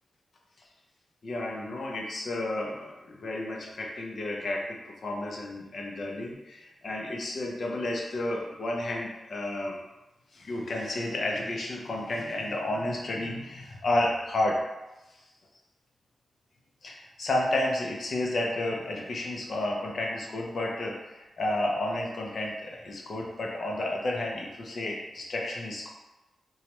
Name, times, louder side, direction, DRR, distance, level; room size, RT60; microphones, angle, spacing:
voice 1, 1.2-9.8 10.3-14.6 15.1-15.2 16.8-25.9, left 1 dB, 60° left, -1 dB, 0.6 m, -31 dB
3.0 x 2.3 x 3.0 m, 1.0 s
wide cardioid pair, 115°, 0 cm